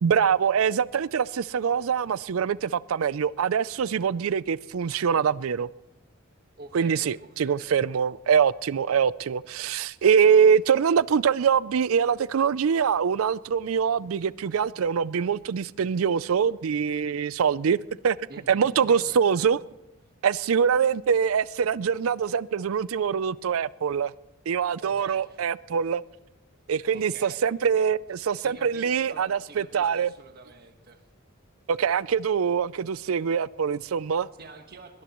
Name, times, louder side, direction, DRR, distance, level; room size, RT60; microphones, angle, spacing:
voice 1, 0.0-5.7 6.7-17.8 18.0-19.6 20.2-24.1 24.5-26.0 26.7-30.1 31.7-34.3, right 7 dB, 85° right, 0.4 m, -24 dB
voice 2, 6.6-7.7 18.3-19.3 24.8-25.4 26.9-27.5 28.4-31.0 33.9-34.0 34.4-35.0, right 3 dB, 50° right, 1.4 m, -46 dB
22.0 x 18.5 x 3.0 m
head